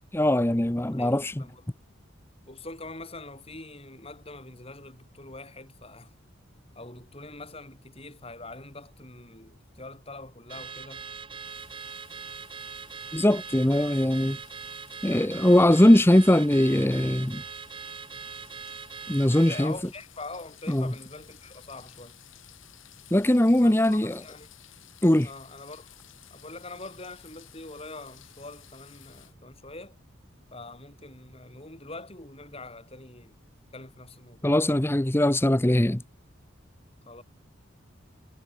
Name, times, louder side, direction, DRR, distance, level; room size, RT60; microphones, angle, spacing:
voice 1, 0.1-1.4 13.1-14.4 15.0-17.4 19.1-19.7 20.7-20.9 23.1-24.2 25.0-25.3 34.4-36.0, left 1 dB, 10° left, 0.7 m, -21 dB
voice 2, 0.9-1.6 2.5-6.1 6.7-11.0 15.4-15.8 19.5-22.2 23.6-24.5 25.2-25.9 26.3-30.0 30.5-33.4 33.7-34.7 37.1-37.2, left 2 dB, 30° left, 6.6 m, -44 dB
Car / Alarm, 10.5-19.8, right 5 dB, 25° right, 1.6 m, -41 dB
sound 1, 11.4-29.3, left 12 dB, 70° left, 7.5 m, -55 dB
head